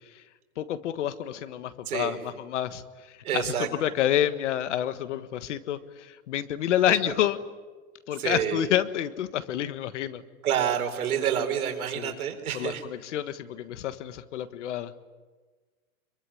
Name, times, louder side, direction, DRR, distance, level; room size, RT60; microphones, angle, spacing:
voice 1, 0.6-7.4 8.1-10.2 12.0-12.1 12.5-14.9, left 11 dB, 55° left, 12 dB, 1.6 m, -29 dB
voice 2, 1.9-2.2 3.2-3.7 7.0-7.1 8.2-8.6 10.4-12.8, right 9 dB, 75° right, 5 dB, 4.2 m, -28 dB
26.0 x 23.0 x 9.8 m, 1.4 s
supercardioid pair, 170°, 43 cm